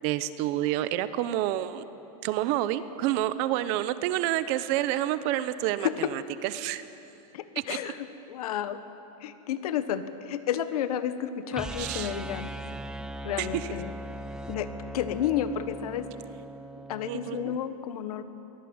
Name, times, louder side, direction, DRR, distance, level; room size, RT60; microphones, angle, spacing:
voice 1, 0.0-1.8 2.2-6.8 7.7-7.8 11.8-12.1 13.4-13.7 17.1-17.5, right 13 dB, 40° right, 14 dB, 0.8 m, -29 dB
voice 2, 5.8-6.1 7.3-8.8 9.2-12.5 13.2-13.9 14.5-14.7 14.9-16.1 16.9-18.2, left 10 dB, 80° left, 11 dB, 1.5 m, -31 dB
sound 1, 11.5-17.6, right 1 dB, 5° right, 0.4 m, -39 dB
23.0 x 18.0 x 8.8 m, 2.9 s
supercardioid pair, 165°, 19 cm